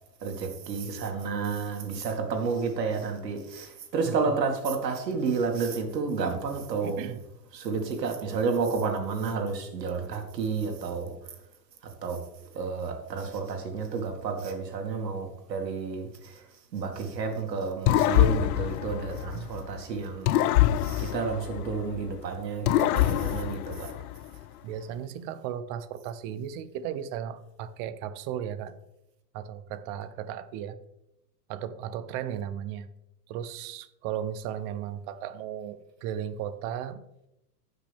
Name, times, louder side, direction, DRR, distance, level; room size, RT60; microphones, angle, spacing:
voice 1, 0.2-7.0 7.5-11.2 12.0-12.2 12.5-16.4 16.7-20.3 20.8-23.9, right 5 dB, 85° right, 2.4 m, -31 dB
voice 2, 6.8-7.2 19.3-19.5 24.6-28.7 29.3-30.8 31.5-32.9 33.3-37.0, right 9 dB, 40° right, 0.9 m, -35 dB
sound 1, 17.9-19.7 20.3-22.1 22.6-24.4, left 14 dB, 65° left, 0.6 m, -25 dB
15.5 x 5.9 x 3.6 m
hypercardioid pair, 120°, 48 cm